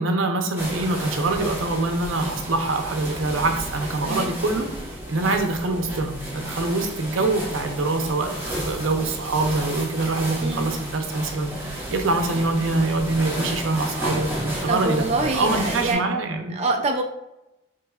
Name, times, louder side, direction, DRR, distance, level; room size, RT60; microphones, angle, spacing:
voice 1, 0.0-4.7 5.1-15.1 15.3-16.6, right 2 dB, 80° right, 4 dB, 0.7 m, -24 dB
sound 1, 0.6-15.9, right 1 dB, 10° right, 1.3 m, -32 dB
voice 2, 10.4-10.7 14.7-16.0 16.5-17.0, right 2 dB, 35° right, 3 dB, 0.4 m, -25 dB
6.7 x 3.1 x 2.4 m, 0.90 s
head